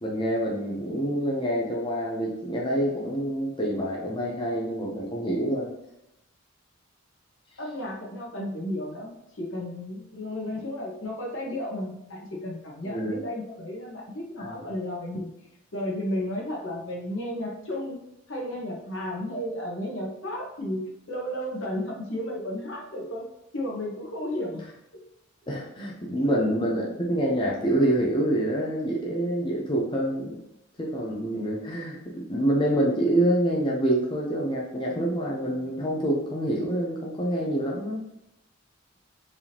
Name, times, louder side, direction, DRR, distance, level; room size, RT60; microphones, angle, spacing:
voice 1, 0.0-5.7 12.8-13.2 14.4-14.7 25.5-30.4 30.8-38.0, right 1 dB, 25° left, -3 dB, 0.6 m, -26 dB
voice 2, 7.6-15.3 15.7-18.0 18.3-20.8 21.1-23.2 23.5-24.7, left 1 dB, 70° left, -1 dB, 1.3 m, -33 dB
4.7 x 3.5 x 2.8 m, 0.86 s
head